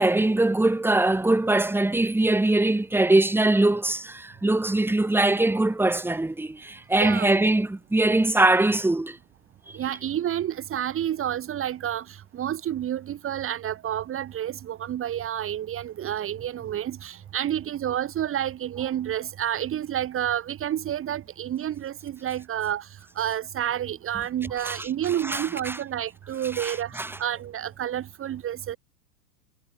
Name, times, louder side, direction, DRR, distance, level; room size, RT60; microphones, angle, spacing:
voice 1, 0.0-9.2 9.7-9.8 24.6-25.8 26.5-27.2, right 2 dB, 5° right, 3.9 m, -22 dB
voice 2, 7.0-7.3 9.7-28.8, right 11 dB, 25° right, 3.1 m, -29 dB
hypercardioid pair, 110°, 47 cm